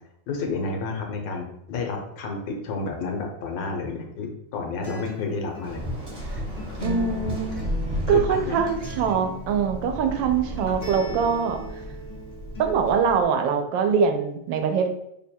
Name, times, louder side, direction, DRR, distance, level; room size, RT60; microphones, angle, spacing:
voice 1, 0.3-5.8 8.1-8.6, left 4 dB, 85° left, 2 dB, 1.5 m, -30 dB
Acoustic guitar, 4.8-12.8, equal, 50° left, 0.5 m, -38 dB
Waves surf, 5.6-13.2, equal, 35° right, 0.7 m, -34 dB
voice 2, 6.8-7.6 8.1-11.6 12.6-14.9, right 6 dB, 90° right, 5 dB, 1.3 m, -23 dB
3.4 x 2.2 x 4.3 m, 0.77 s
omnidirectional pair, 2.0 m